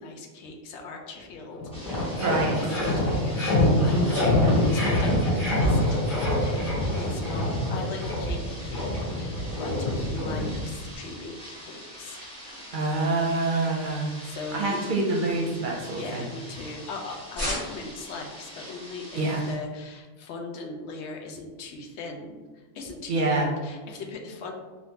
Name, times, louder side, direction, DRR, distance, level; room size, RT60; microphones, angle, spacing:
voice 1, 0.0-8.9 9.2-12.2 14.2-14.9 15.9-24.5, left 3 dB, 90° left, 2 dB, 0.9 m, -39 dB
sound 1, 1.2-1.3 1.5-10.9, left 1 dB, 50° left, 1.6 m, -25 dB
sound 2, 1.7-19.5, equal, 5° left, 0.5 m, -45 dB
voice 2, 2.2-2.5 12.7-14.1 14.5-16.3 19.1-19.4 23.1-23.5, right 2 dB, 55° right, -1 dB, 0.6 m, -26 dB
sound 3, 9.9-16.9 17.3-18.0, equal, 70° left, 1.6 m, -41 dB
3.4 x 2.6 x 2.7 m, 1.3 s
omnidirectional pair, 1.1 m